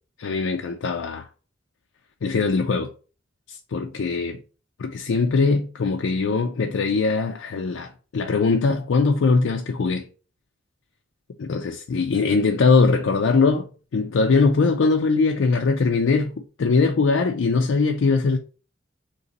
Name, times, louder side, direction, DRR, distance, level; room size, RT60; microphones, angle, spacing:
voice 1, 0.2-1.3 2.2-2.9 3.5-4.4 4.8-10.1 11.4-18.4, left 4 dB, 85° left, 0.4 m, -21 dB
3.9 x 3.0 x 4.0 m
head